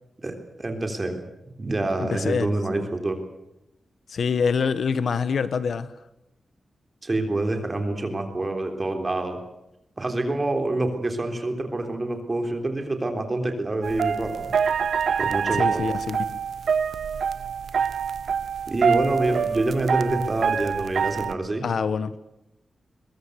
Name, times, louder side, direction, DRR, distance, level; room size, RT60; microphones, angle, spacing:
voice 1, 0.2-1.2 1.6-3.2 7.0-9.4 10.0-14.5 15.2-15.9 18.7-21.6, right 2 dB, 25° right, 5 dB, 3.6 m, -27 dB
voice 2, 2.0-2.5 2.7-2.8 4.1-5.9 15.5-16.4 21.6-22.2, left 5 dB, 65° left, 14 dB, 1.1 m, -25 dB
sound 1, 13.8-21.3, right 6 dB, 75° right, 0.9 m, -25 dB
22.5 x 22.0 x 8.1 m, 0.87 s
wide cardioid pair, 150°, 0 cm